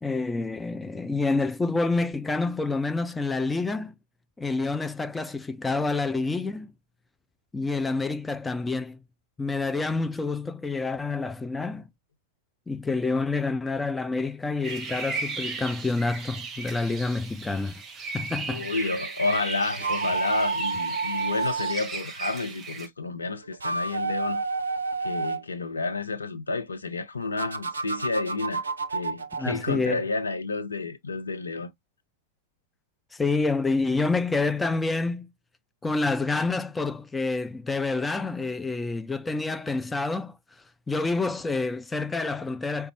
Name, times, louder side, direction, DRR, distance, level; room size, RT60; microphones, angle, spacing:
voice 1, 0.0-3.9 4.4-6.7 7.5-9.0 9.4-11.9 12.7-17.7 18.1-18.7 29.4-30.0 33.1-35.3 35.8-40.4 40.9-42.9, left 3 dB, 10° left, 0.3 m, -28 dB
sound 1, 14.6-22.9, right 4 dB, 25° right, 0.9 m, -36 dB
voice 2, 18.5-24.4 25.0-31.7, left 3 dB, 75° left, 0.6 m, -30 dB
sound 2, 19.7-21.8 23.4-25.4 27.4-29.5, right 4 dB, 75° right, 0.4 m, -30 dB
5.1 x 2.2 x 2.9 m
figure-of-eight pair, 90°, 0 cm